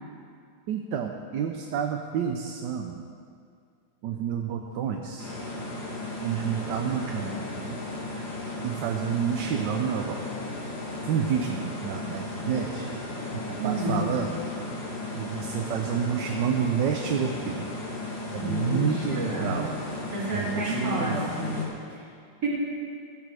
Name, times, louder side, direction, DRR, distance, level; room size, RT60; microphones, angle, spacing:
voice 1, 0.7-3.0 4.0-5.3 6.2-7.8 8.6-10.2 11.0-12.9 13.6-14.3 15.1-17.7 18.3-19.7 20.3-21.2, right 8 dB, 75° right, 3 dB, 1.4 m, -29 dB
sound 1, 5.2-21.7, left 2 dB, 85° left, 2.9 m, -35 dB
voice 2, 13.6-14.1 18.4-19.7 20.1-22.0 22.4-22.5, equal, 50° right, -6 dB, 3.4 m, -30 dB
16.0 x 14.0 x 3.4 m, 2.3 s
omnidirectional pair, 2.0 m